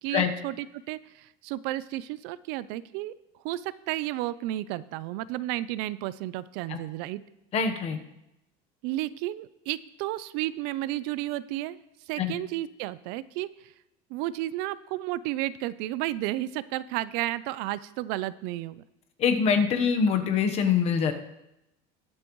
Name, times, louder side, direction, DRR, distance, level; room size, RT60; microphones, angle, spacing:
voice 1, 0.0-3.1 3.4-7.2 8.8-11.8 12.1-13.7 14.1-18.8, right 15 dB, 60° right, 16 dB, 0.5 m, -32 dB
voice 2, 7.5-8.0 12.2-12.3 19.2-21.1, left 6 dB, 35° left, 6 dB, 1.1 m, -24 dB
20.5 x 8.7 x 3.1 m, 0.88 s
cardioid pair, 175°, 19 cm